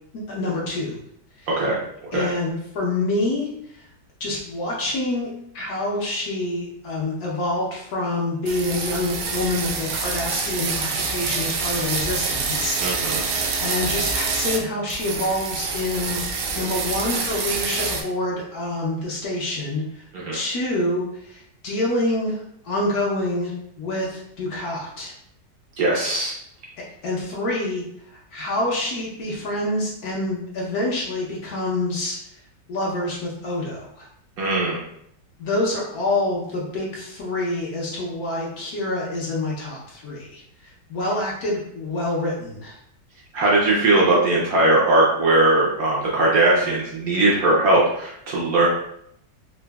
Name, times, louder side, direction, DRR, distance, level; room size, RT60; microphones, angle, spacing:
voice 1, 0.3-1.0 1.4-1.5 2.1-3.8 4.2-19.8 20.3-25.1 27.0-32.2 32.7-34.1 35.4-40.4 40.9-42.8, left 2 dB, 60° left, -4 dB, 1.2 m, -27 dB
voice 2, 1.5-1.8 2.1-2.3 12.8-13.2 20.1-20.4 25.8-26.3 34.4-34.8 43.3-48.7, right 2 dB, 60° right, -4 dB, 1.1 m, -19 dB
sound 1, 8.5-14.6 14.9-18.0, right 4 dB, 75° right, 0.7 m, -26 dB
3.9 x 2.6 x 2.3 m, 0.71 s
omnidirectional pair, 1.9 m